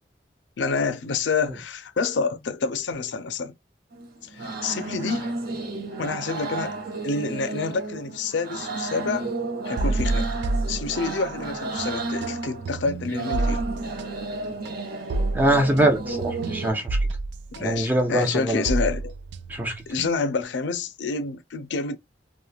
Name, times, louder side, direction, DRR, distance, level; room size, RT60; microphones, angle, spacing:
voice 1, 0.6-3.5 4.2-5.3 6.0-6.8 7.0-9.3 9.6-10.3 10.7-13.6 17.5-19.1 19.9-22.0, left 4 dB, 85° left, 0.5 m, -28 dB
sound 1, 3.9-16.7, right 3 dB, 60° right, 0.8 m, -32 dB
sound 2, 9.8-11.5 11.8-20.4, right 2 dB, 85° right, 0.3 m, -29 dB
voice 2, 15.3-17.0 17.6-18.7 19.5-19.7, right 1 dB, 10° right, 0.7 m, -23 dB
3.0 x 2.1 x 2.3 m
head